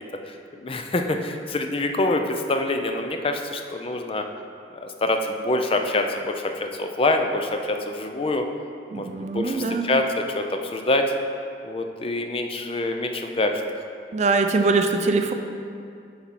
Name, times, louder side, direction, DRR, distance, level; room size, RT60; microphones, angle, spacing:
voice 1, 0.3-4.2 4.7-8.5 8.9-9.1 9.3-11.1 11.6-13.6, left 2 dB, 30° left, 5 dB, 0.5 m, -25 dB
voice 2, 8.9-10.0 14.1-15.3, right 3 dB, 40° right, 6 dB, 0.4 m, -22 dB
10.0 x 4.3 x 4.2 m, 2.4 s
head